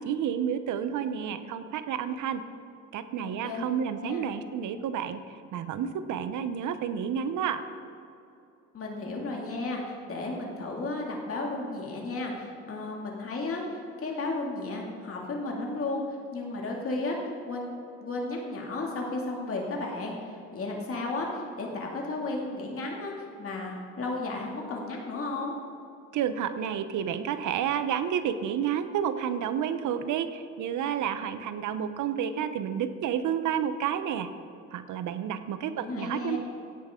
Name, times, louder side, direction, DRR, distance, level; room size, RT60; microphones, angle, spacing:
voice 1, 0.0-2.5 2.9-7.6 26.1-34.3 34.7-36.4, right 8 dB, 75° right, 11 dB, 0.8 m, -30 dB
voice 2, 3.2-3.7 4.0-4.2 8.7-17.7 18.0-25.5 35.7-36.4, left 2 dB, 45° left, -1 dB, 2.4 m, -34 dB
16.0 x 8.6 x 3.7 m, 2.7 s
cardioid pair, 90°, 30 cm